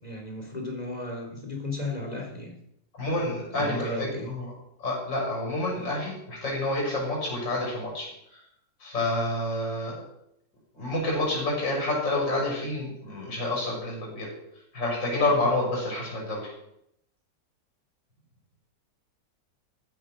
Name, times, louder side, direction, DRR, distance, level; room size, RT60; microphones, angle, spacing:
voice 1, 0.0-2.5 3.5-4.3, left 2 dB, 20° left, 2 dB, 3.2 m, -34 dB
voice 2, 3.0-4.5 4.8-8.1 8.8-9.9 10.8-14.3 14.7-16.5, left 2 dB, 85° left, -2 dB, 7.2 m, -28 dB
15.0 x 9.5 x 6.3 m, 0.79 s
omnidirectional pair, 1.9 m